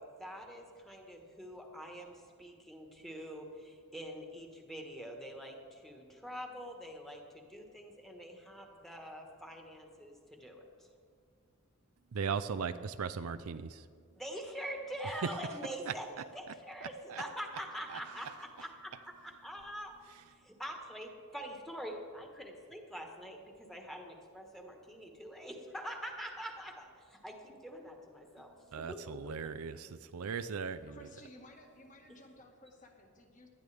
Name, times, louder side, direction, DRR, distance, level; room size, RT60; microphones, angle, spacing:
voice 1, 0.0-10.9 14.1-18.9 19.2-19.9 20.3-28.6 28.9-29.5 32.1-32.2, equal, ahead, 1 dB, 1.5 m, -45 dB
voice 2, 12.1-13.9 15.9-16.0 16.8-17.2 17.9-18.3 28.7-31.1, right 6 dB, 75° right, 11 dB, 0.5 m, -38 dB
voice 3, 30.9-33.5, left 1 dB, 35° left, 2 dB, 1.7 m, -56 dB
18.5 x 12.0 x 3.5 m, 2.1 s
head